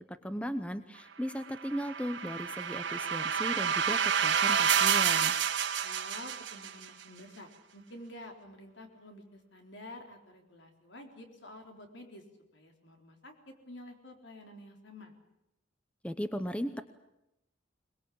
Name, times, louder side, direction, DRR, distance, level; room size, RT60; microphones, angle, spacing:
voice 1, 0.1-5.3 16.0-16.8, equal, 5° left, 10 dB, 0.9 m, -37 dB
sound 1, 1.6-6.9, right 8 dB, 65° right, 1.9 m, -29 dB
voice 2, 5.8-12.2 12.5-15.1, left 1 dB, 65° left, 4 dB, 3.9 m, -49 dB
22.5 x 21.5 x 8.7 m, 0.88 s
head